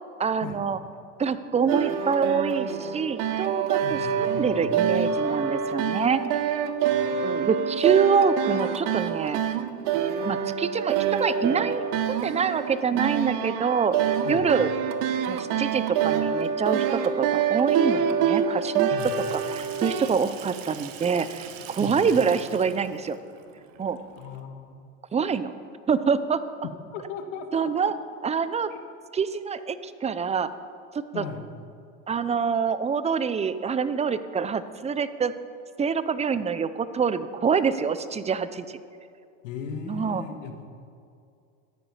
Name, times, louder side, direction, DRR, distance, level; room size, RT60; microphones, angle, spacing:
voice 1, 0.2-0.8 1.2-6.5 7.2-9.4 10.2-14.0 14.3-14.7 15.3-18.9 19.3-23.2 23.8-24.0 25.1-25.5 25.9-26.4 27.5-27.9 28.2-28.7 29.1-30.5 30.9-31.2 32.1-35.3 35.8-38.8 39.9-40.2, right 6 dB, 15° right, 13 dB, 0.6 m, -26 dB
sound 1, 1.7-20.1, right 7 dB, 60° right, 1.0 m, -26 dB
voice 2, 3.8-4.8 6.8-7.5 14.2-14.5 18.9-19.1 21.8-22.0 24.2-24.8 26.9-27.9 28.7-28.8 31.1-31.5 39.4-40.7, left 6 dB, 80° left, 6 dB, 1.6 m, -38 dB
Water tap faucet / Sink (filling or washing), 19.0-24.4, right 10 dB, 85° right, 1.2 m, -44 dB
14.0 x 9.7 x 5.7 m, 2.4 s
supercardioid pair, 105°, 37 cm